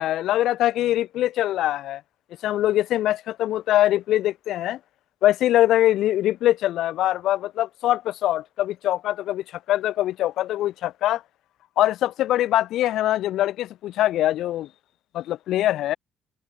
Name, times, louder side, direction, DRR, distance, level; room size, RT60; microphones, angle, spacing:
voice 1, 0.0-2.0 2.4-4.8 5.2-11.2 11.8-14.7 15.1-16.0, left 13 dB, 75° left, 0.4 m, -23 dB
cardioid pair, 85°, 0 cm